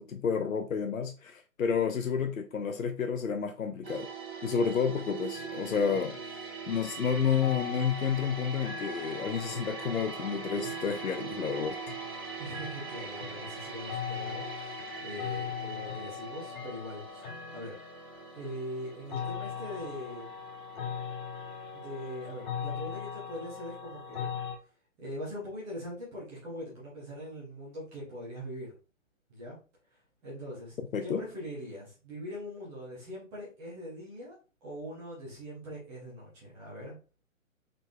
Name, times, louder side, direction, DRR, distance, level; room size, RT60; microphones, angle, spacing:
voice 1, 0.0-4.1 4.4-6.1 6.7-11.8 30.9-31.2, left 6 dB, 75° left, 0.6 m, -30 dB
sound 1, 3.8-22.7 22.9-23.1, right 6 dB, 45° right, 1.2 m, -42 dB
sound 2, 5.3-24.6, left 7 dB, 35° left, 0.9 m, -41 dB
voice 2, 12.4-17.8 18.3-20.4 21.7-24.3 25.0-28.7 29.3-29.6 30.2-30.7 31.0-34.4 34.6-37.0, equal, 5° right, 0.6 m, -42 dB
3.8 x 3.6 x 2.2 m
figure-of-eight pair, 130°, 41 cm